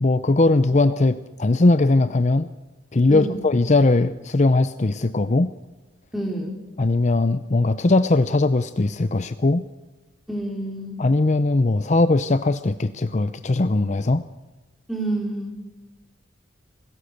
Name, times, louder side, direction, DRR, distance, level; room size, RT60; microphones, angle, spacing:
voice 1, 0.0-2.5 2.9-5.5 6.8-9.6 11.0-14.2, left 2 dB, 40° left, 12 dB, 0.6 m, -19 dB
voice 2, 6.1-6.6 10.3-11.0 14.9-15.6, right 1 dB, ahead, 2 dB, 3.8 m, -28 dB
27.5 x 18.5 x 6.7 m, 1.2 s
head